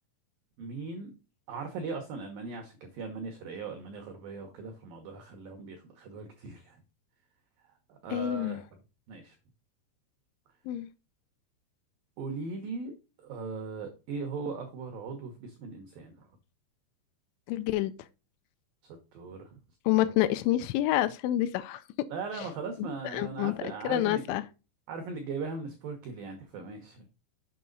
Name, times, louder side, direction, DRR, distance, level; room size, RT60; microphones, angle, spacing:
voice 1, 0.6-1.1 1.5-6.8 7.6-8.6 9.1-9.4 12.2-16.3 18.8-19.6 19.9-20.1 22.1-24.2 24.9-27.1, right 4 dB, 80° right, 2.0 m, -39 dB
voice 2, 8.1-8.6 10.7-10.9 17.5-17.9 19.9-21.8 23.1-23.5 23.8-24.4, left 14 dB, 85° left, 2.9 m, -27 dB
7.6 x 5.7 x 3.9 m
omnidirectional pair, 5.5 m